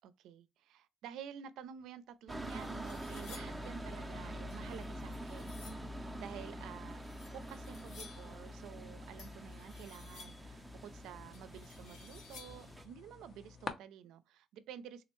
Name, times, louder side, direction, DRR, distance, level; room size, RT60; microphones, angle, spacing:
voice 1, 0.0-7.0 7.3-15.0, right 9 dB, 90° right, 0.4 m, -51 dB
sound 1, 1.8-1.9 2.3-3.7 4.5-5.9 6.9-8.4 9.2-10.6 11.3-12.7, left 5 dB, 85° left, 0.9 m, -56 dB
sound 2, 2.3-12.9, equal, 10° right, 0.5 m, -46 dB
sound 3, 2.4-13.7, left 4 dB, 45° left, 0.7 m, -53 dB
3.8 x 2.0 x 3.0 m
cardioid pair, 90°, 0 cm